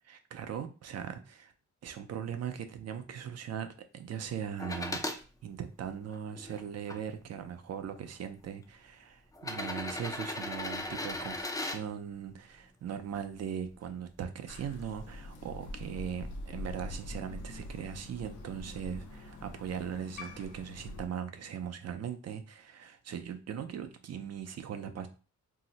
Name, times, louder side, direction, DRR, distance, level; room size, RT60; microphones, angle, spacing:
voice 1, 0.1-1.5 1.8-3.7 3.9-5.2 5.4-25.1, right 8 dB, 55° right, 8 dB, 0.4 m, -39 dB
sound 1, 4.6-5.2 5.9-7.0 8.0-8.1 9.3-11.8 13.7-13.8, left 2 dB, 10° left, 0.3 m, -37 dB
Crow, 14.5-21.1, left 1 dB, 85° left, 0.6 m, -44 dB
2.7 x 2.0 x 3.9 m, 0.34 s
wide cardioid pair, 150°, 30 cm